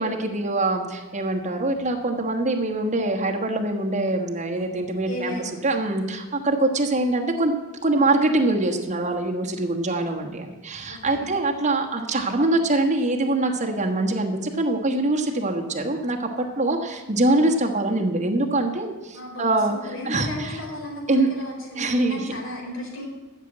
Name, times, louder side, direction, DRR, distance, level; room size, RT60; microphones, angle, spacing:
voice 1, 0.0-5.3 5.6-7.5 7.8-16.3 16.6-19.7 20.1-20.6 21.1-21.3 21.8-22.3, right 2 dB, 35° right, 2 dB, 1.3 m, -24 dB
voice 2, 5.0-5.8 10.9-11.3 16.6-16.7 19.1-23.0, left 1 dB, 65° left, -1 dB, 4.2 m, -35 dB
12.5 x 6.8 x 8.8 m, 1.1 s
head